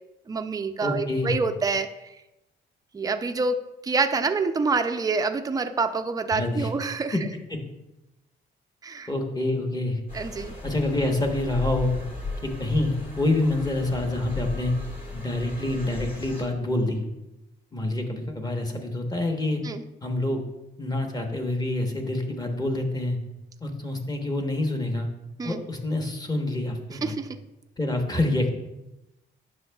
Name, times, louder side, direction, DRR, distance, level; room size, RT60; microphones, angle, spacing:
voice 1, 0.3-2.1 2.9-7.2 8.8-9.1 10.1-10.5 19.6-19.8 25.4-25.6 27.0-27.4, right 4 dB, 20° right, 8 dB, 0.4 m, -27 dB
voice 2, 0.8-1.3 6.3-6.7 7.5-7.6 9.1-10.0 10.6-12.0 12.4-14.7 15.1-17.1 17.7-19.6 20.0-20.4 20.8-23.2 23.6-25.1 25.4-27.2 27.8-28.5, left 2 dB, 20° left, 3 dB, 1.1 m, -27 dB
sound 1, 10.1-16.4, left 3 dB, 45° left, 2.1 m, -36 dB
9.6 x 6.2 x 2.3 m, 0.96 s
cardioid pair, 90°, 20 cm